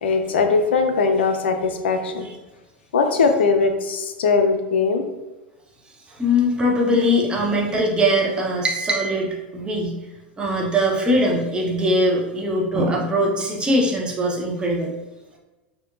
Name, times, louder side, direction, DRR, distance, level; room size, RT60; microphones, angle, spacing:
voice 1, 0.0-2.3 2.9-5.1, left 4 dB, 75° left, 6 dB, 0.4 m, -20 dB
voice 2, 6.1-10.0 10.4-14.9, equal, 15° right, -2 dB, 0.8 m, -21 dB
4.3 x 2.1 x 2.5 m, 1.1 s
hypercardioid pair, 90°, 6 cm